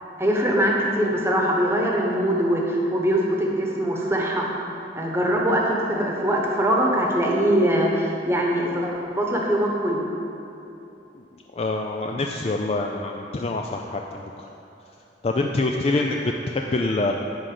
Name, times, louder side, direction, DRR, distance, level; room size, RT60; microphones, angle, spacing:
voice 1, 0.2-4.5 4.9-10.1, equal, 15° right, -1 dB, 1.1 m, -22 dB
voice 2, 11.5-14.5 15.2-17.1, left 2 dB, 35° left, 2 dB, 0.4 m, -25 dB
11.0 x 4.0 x 7.6 m, 2.9 s
head